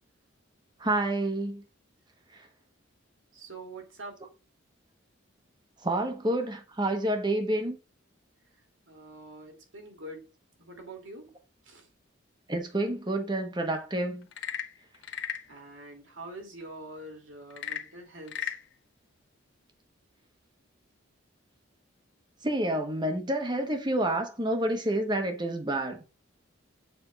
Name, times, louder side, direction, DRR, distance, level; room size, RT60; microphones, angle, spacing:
voice 1, 0.8-1.6 5.8-7.8 12.5-14.3 22.4-26.0, right 1 dB, 20° right, 1.0 m, -28 dB
voice 2, 3.3-4.2 8.9-10.3 10.6-11.3 11.6-11.9 15.5-18.5, right 2 dB, 75° right, 2.3 m, -45 dB
Frog / Percussion / Wood, 14.2-15.5 17.5-18.7, left 8 dB, 60° left, 0.6 m, -36 dB
6.9 x 3.4 x 4.6 m
head